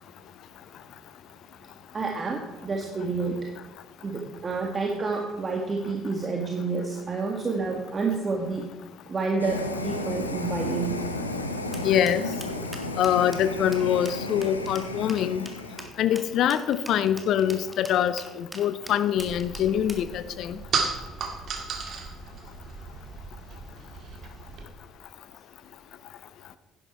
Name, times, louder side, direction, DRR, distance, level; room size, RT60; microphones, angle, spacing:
voice 1, 1.9-3.3 4.0-8.7 9.1-10.9, right 4 dB, 30° right, 1 dB, 1.6 m, -29 dB
sound 1, 9.4-15.9, left 2 dB, 90° left, 0.7 m, -33 dB
sound 2, 11.7-20.1, right 1 dB, 5° right, 1.9 m, -43 dB
voice 2, 11.8-12.2 13.0-15.5 16.0-20.6, left 10 dB, 55° left, 14 dB, 0.6 m, -24 dB
sound 3, 19.2-24.7, right 5 dB, 50° right, 1.8 m, -34 dB
11.0 x 10.5 x 4.5 m, 1.2 s
figure-of-eight pair, 55°, 0 cm